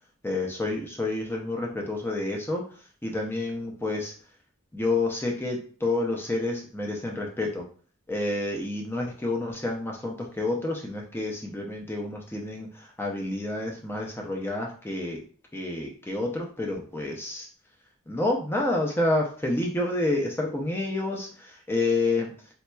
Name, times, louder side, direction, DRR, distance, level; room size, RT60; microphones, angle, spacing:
voice 1, 0.2-2.6 3.0-4.1 4.7-7.7 8.1-15.2 15.5-17.5 18.1-22.3, left 2 dB, 10° left, 0 dB, 0.5 m, -29 dB
4.1 x 2.8 x 2.2 m, 0.43 s
head